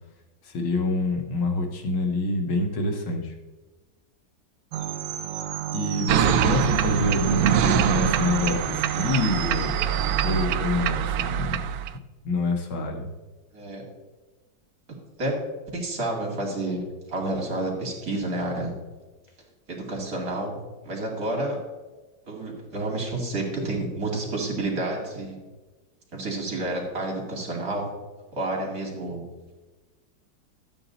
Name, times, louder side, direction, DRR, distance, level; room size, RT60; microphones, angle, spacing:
voice 1, 0.4-3.3 5.7-9.9 10.2-11.7 12.2-13.1, left 2 dB, 85° left, 2 dB, 2.3 m, -26 dB
sound 1, 4.7-10.5, right 11 dB, 70° right, 1.2 m, -31 dB
sound 2, 6.1-11.9, right 9 dB, 90° right, 0.8 m, -24 dB
voice 2, 15.7-16.8 17.1-18.7 19.7-20.6 20.8-21.6 22.3-25.4 26.1-27.9 28.3-29.2, right 2 dB, 45° right, -1 dB, 2.9 m, -29 dB
12.5 x 8.7 x 4.0 m, 1.2 s
omnidirectional pair, 2.2 m